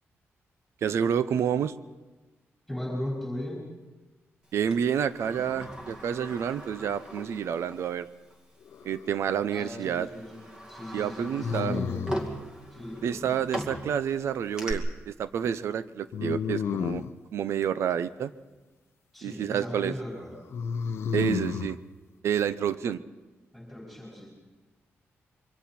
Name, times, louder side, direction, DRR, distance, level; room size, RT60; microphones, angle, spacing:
voice 1, 0.8-1.7 4.5-8.1 8.8-10.1 10.9-11.8 13.0-17.0 17.3-18.3 19.2-19.9 21.1-21.8 22.2-23.0, right 8 dB, 70° right, 15 dB, 0.7 m, -29 dB
voice 2, 2.7-3.6 9.5-12.2 12.7-13.3 19.1-20.3 23.5-24.3, left 1 dB, ahead, -4 dB, 4.9 m, -37 dB
Sliding door, 4.7-7.9 8.3-8.4 9.3-9.5 10.0-14.7, equal, 15° right, 2.2 m, -39 dB
sound 1, 8.7-9.3 11.4-12.4 16.1-17.2 20.5-21.8, left 7 dB, 60° left, 0.7 m, -31 dB
27.5 x 23.5 x 4.4 m, 1.2 s
wide cardioid pair, 170°, 5 cm